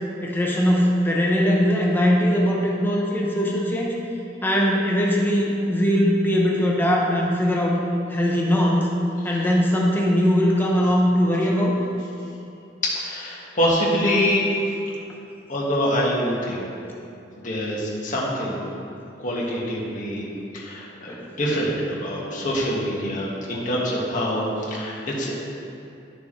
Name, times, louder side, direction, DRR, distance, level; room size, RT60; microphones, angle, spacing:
voice 1, 0.2-3.9 4.4-7.8 8.1-8.9 9.2-11.8 21.1-21.3, equal, 10° left, -3 dB, 0.9 m, -20 dB
voice 2, 12.8-14.5 15.5-16.7 17.3-18.6 19.2-25.4, equal, 45° left, -5 dB, 1.7 m, -25 dB
11.5 x 6.7 x 3.2 m, 2.6 s
head